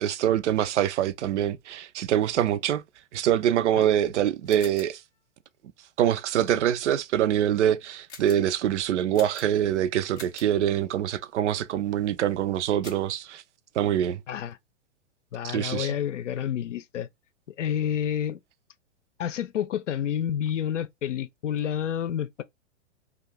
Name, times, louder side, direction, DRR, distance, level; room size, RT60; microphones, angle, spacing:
voice 1, 0.0-2.8 3.1-5.0 6.0-13.4 13.8-14.2 15.4-15.9, right 10 dB, 70° right, 0.5 m, -24 dB
sound 1, 4.4-5.0 8.1-8.5 9.1-9.7 10.1-10.6 12.8-13.2, left 5 dB, 10° left, 0.3 m, -46 dB
voice 2, 14.3-14.6 15.3-17.1 17.6-18.4 19.2-22.4, left 9 dB, 75° left, 0.5 m, -29 dB
2.6 x 2.4 x 3.3 m
hypercardioid pair, 115°, 37 cm